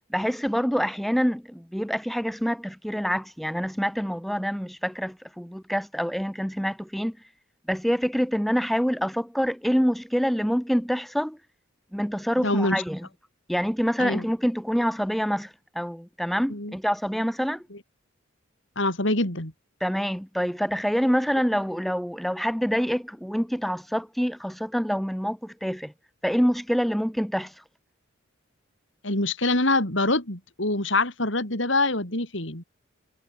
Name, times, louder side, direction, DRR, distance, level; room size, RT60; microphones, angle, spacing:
voice 1, 0.1-7.2 7.7-11.4 11.9-13.1 13.5-17.6 19.8-25.9 26.2-27.5, equal, ahead, 1.7 m, -26 dB
voice 2, 12.4-12.8 14.0-14.2 16.5-16.7 17.7-17.8 18.8-19.5 29.0-32.6, left 2 dB, 65° left, 6.1 m, -25 dB
head